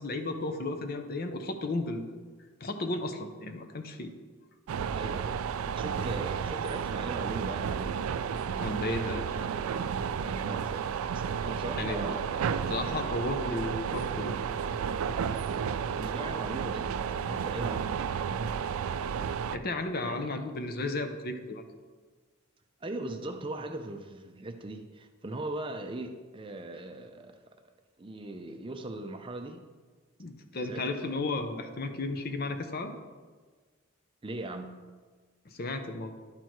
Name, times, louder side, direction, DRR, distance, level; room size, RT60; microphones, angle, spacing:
voice 1, 0.0-2.0 2.6-4.1 8.6-9.5 11.8-12.2 12.7-14.4 19.5-21.6 30.2-32.9 35.5-36.1, left 2 dB, 45° left, 7 dB, 0.7 m, -34 dB
sound 1, 4.7-19.6, right 7 dB, 85° right, 0.3 m, -32 dB
voice 2, 4.9-8.0 10.2-12.4 16.0-16.9 17.3-18.4 19.9-20.4 22.8-27.5 28.0-29.7 30.6-31.1 34.2-34.8, right 2 dB, 25° right, 6 dB, 0.5 m, -40 dB
11.5 x 4.6 x 4.6 m, 1.4 s
head